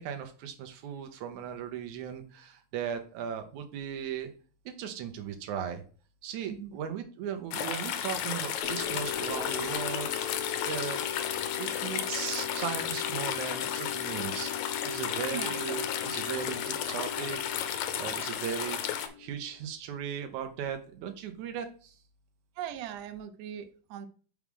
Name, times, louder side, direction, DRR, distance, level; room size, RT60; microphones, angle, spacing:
voice 1, 0.0-4.3 4.7-5.8 6.2-10.1 10.7-11.0 11.6-18.8 19.2-22.0, right 8 dB, 70° right, 6 dB, 2.1 m, -37 dB
sound 1, 7.5-19.1, left 9 dB, 90° left, 2.4 m, -33 dB
sound 2, 8.6-19.5, left 9 dB, 70° left, 2.3 m, -40 dB
voice 2, 22.6-24.1, right 10 dB, 85° right, 9 dB, 1.4 m, -39 dB
6.0 x 4.7 x 3.6 m, 0.39 s
omnidirectional pair, 3.8 m